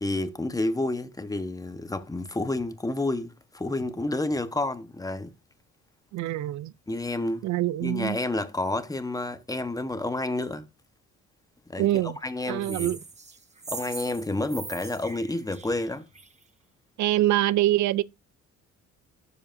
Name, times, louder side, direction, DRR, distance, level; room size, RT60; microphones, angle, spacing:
voice 1, 0.0-5.3 6.9-7.4 7.8-10.6 11.7-12.9 13.7-16.1, left 2 dB, 10° left, 1.0 m, -30 dB
voice 2, 6.1-6.7 7.4-8.2 11.8-12.2 12.5-13.0 17.0-18.0, right 15 dB, 70° right, 0.4 m, -24 dB
sound 1, 12.6-16.4, right 4 dB, 20° right, 1.2 m, -41 dB
12.5 x 4.9 x 2.6 m
cardioid pair, 90°, 30 cm